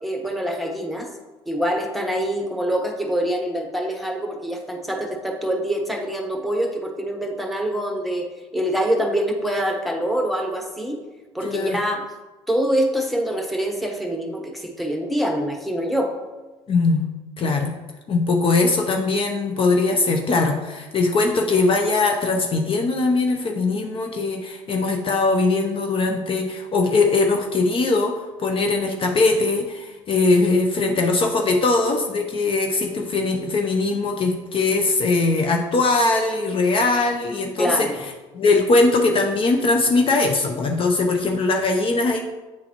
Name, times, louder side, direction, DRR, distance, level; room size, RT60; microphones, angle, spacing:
voice 1, 0.0-1.1 1.5-8.3 8.5-11.0 11.3-12.1 12.5-16.1 37.6-37.9, equal, ahead, 2 dB, 1.1 m, -25 dB
voice 2, 11.4-11.8 16.7-17.0 17.4-17.8 18.1-37.9 38.3-42.2, left 3 dB, 40° left, 3 dB, 0.7 m, -20 dB
8.4 x 3.8 x 3.0 m, 1.2 s
hypercardioid pair, 70°, 14 cm